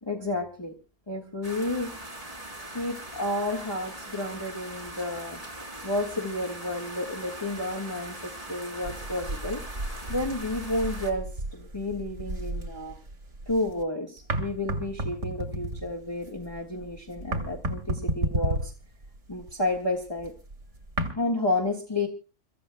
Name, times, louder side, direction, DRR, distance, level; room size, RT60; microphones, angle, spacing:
voice 1, 0.0-0.7 1.1-1.9 2.6-5.4 5.8-9.6 10.1-13.0 13.5-18.7 19.3-20.3 21.2-22.1, left 2 dB, 20° left, 1 dB, 1.5 m, -31 dB
sound 1, 1.4-11.1, right 1 dB, 30° right, 3.8 m, -41 dB
sound 2, 8.8-13.8 14.2-21.1, right 1 dB, 90° right, 2.5 m, -33 dB
29.5 x 15.0 x 2.2 m, 0.32 s
omnidirectional pair, 1.2 m